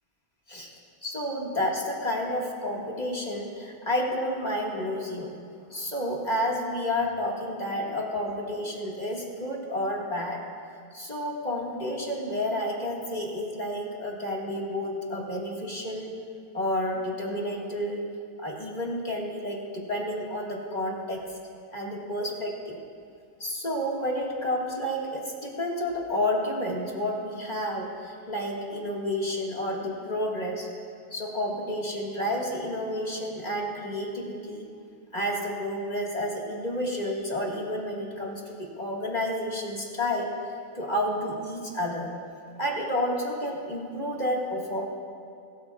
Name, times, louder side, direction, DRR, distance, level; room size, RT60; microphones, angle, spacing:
voice 1, 1.0-5.3 5.7-10.4 10.9-16.1 16.5-18.1 18.4-21.2 21.7-22.8 23.4-30.7 31.1-34.7 35.1-40.3 40.7-42.1 42.6-44.8, left 1 dB, 30° left, -3 dB, 1.9 m, -30 dB
22.0 x 13.0 x 2.4 m, 2.4 s
omnidirectional pair, 1.5 m